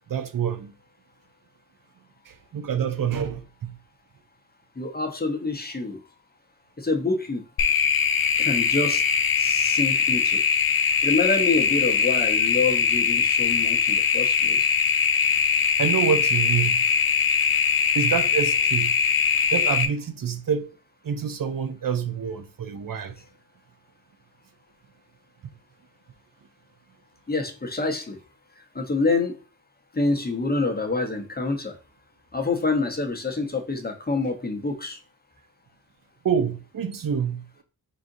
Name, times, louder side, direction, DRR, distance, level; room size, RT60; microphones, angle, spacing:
voice 1, 0.1-0.7 2.3-3.7 15.8-16.8 17.9-19.0 19.5-20.7 21.0-23.2 25.4-25.5 36.2-37.6, right 7 dB, 65° right, 0.5 m, -27 dB
voice 2, 4.8-6.0 6.8-7.4 8.4-9.0 9.4-10.4 11.0-14.8 27.3-28.2 28.7-29.4 29.9-31.8 32.3-35.0, left 3 dB, 25° left, 0.8 m, -26 dB
sound 1, 7.6-19.9, left 6 dB, 75° left, 0.6 m, -21 dB
4.9 x 3.8 x 2.6 m
wide cardioid pair, 115°, 36 cm